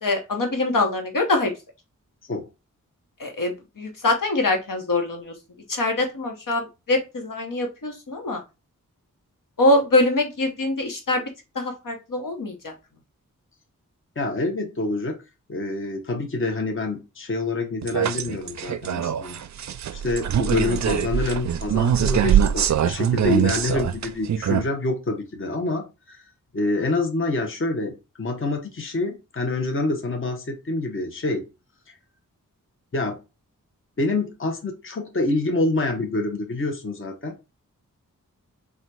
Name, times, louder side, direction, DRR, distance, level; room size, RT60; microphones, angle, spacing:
voice 1, 0.0-1.5 3.2-5.3 5.7-8.4 9.6-11.2 11.5-12.7, left 2 dB, 70° left, 4 dB, 1.2 m, -23 dB
voice 2, 14.2-15.2 15.5-19.4 19.9-26.2 26.5-31.4 31.9-32.0 32.9-33.2 34.0-37.3, left 2 dB, 40° left, 4 dB, 0.9 m, -26 dB
sound 1, 17.8-24.6, right 9 dB, 55° right, 0.4 m, -23 dB
4.0 x 2.4 x 4.6 m, 0.27 s
wide cardioid pair, 65°, 33 cm